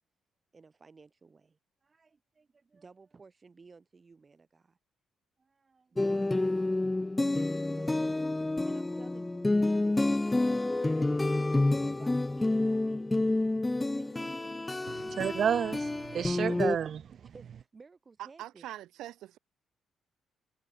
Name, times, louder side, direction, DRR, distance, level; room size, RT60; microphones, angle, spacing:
voice 1, 0.5-4.8 5.4-7.1 7.7-9.5 9.8-13.1 13.6-14.3 14.6-15.1 16.2-16.8 17.3-18.7, right 4 dB, 30° right, 7.6 m, -56 dB
sound 1, 6.0-16.8, left 2 dB, 15° left, 0.5 m, -29 dB
voice 2, 14.9-17.0, right 8 dB, 55° right, 1.7 m, -31 dB
voice 3, 18.2-19.4, right 14 dB, 85° right, 4.1 m, -43 dB
cardioid pair, 90°, 0 cm